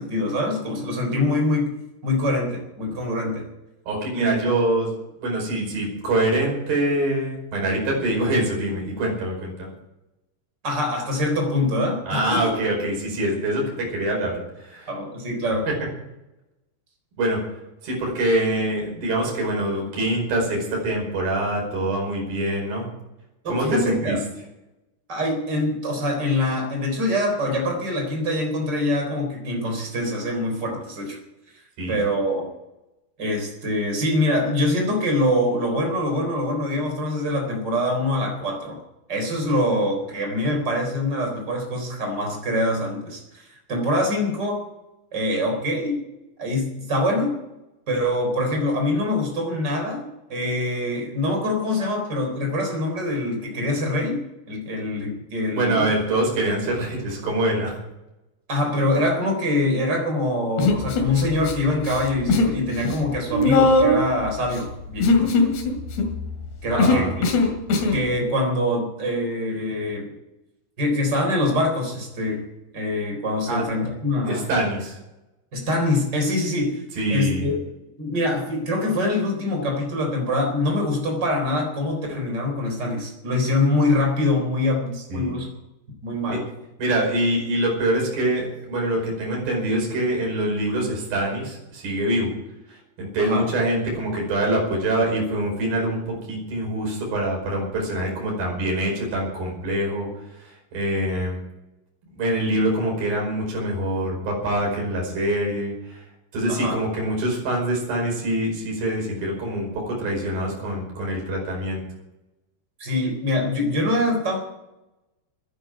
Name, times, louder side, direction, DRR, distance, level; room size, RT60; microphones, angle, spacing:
voice 1, 0.0-1.7 2.0-3.5 4.1-4.5 10.6-12.4 14.9-15.7 23.4-24.2 25.1-31.2 31.9-32.5 33.2-38.8 39.1-44.6 45.1-46.0 46.4-47.4 47.9-54.2 54.5-55.9 58.5-65.4 66.6-67.3 67.9-70.1 70.8-72.5 72.7-74.5 75.5-76.8 77.1-77.6 78.0-85.5 86.0-86.4 93.2-93.4 106.5-106.8 112.8-114.4, left 1 dB, 25° right, 2 dB, 4.2 m, -24 dB
voice 2, 3.9-4.9 5.2-9.7 12.1-14.9 15.7-15.8 17.2-17.4 17.8-22.9 23.5-24.2 31.8-32.0 55.5-57.8 66.7-67.2 73.5-73.6 74.2-75.0 76.9-77.6 85.1-85.3 86.3-86.4 86.8-92.3 92.7-101.4 102.2-106.0 106.3-111.8, right 1 dB, 55° right, -1 dB, 6.9 m, -25 dB
Human voice, 60.6-61.5 61.8-62.6 62.8-68.0, left 3 dB, 70° left, 4.1 m, -20 dB
13.0 x 10.0 x 9.4 m, 0.95 s
omnidirectional pair, 5.0 m